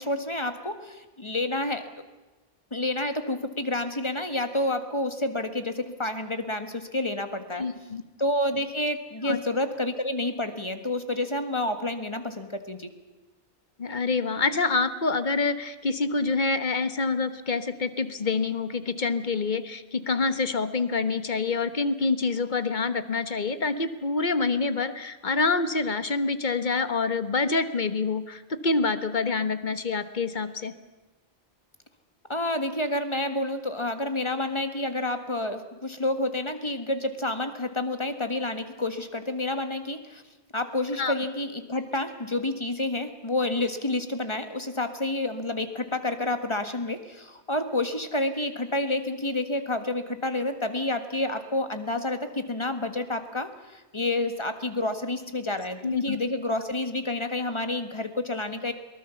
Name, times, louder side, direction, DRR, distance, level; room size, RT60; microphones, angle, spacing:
voice 1, 0.0-1.9 2.7-7.6 8.2-12.9 32.3-40.2 40.5-58.7, left 2 dB, 25° left, 8 dB, 1.7 m, -29 dB
voice 2, 7.6-8.0 9.2-9.4 13.8-30.7 41.0-41.1 55.8-56.2, left 4 dB, 45° left, 11 dB, 1.3 m, -26 dB
22.5 x 19.5 x 7.1 m, 1.2 s
omnidirectional pair, 1.1 m